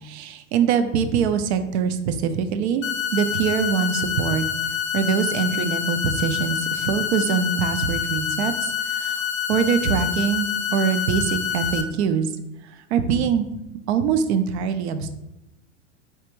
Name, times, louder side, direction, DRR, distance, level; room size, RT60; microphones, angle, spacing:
voice 1, 0.0-2.8 3.1-4.4 4.9-9.2 9.5-12.3 12.6-13.5 13.9-15.1, right 7 dB, 60° right, 9 dB, 0.5 m, -23 dB
sound 1, 2.8-11.8, left 8 dB, 85° left, 0.5 m, -27 dB
3.4 x 2.4 x 3.0 m, 0.91 s
hypercardioid pair, 100°, 39 cm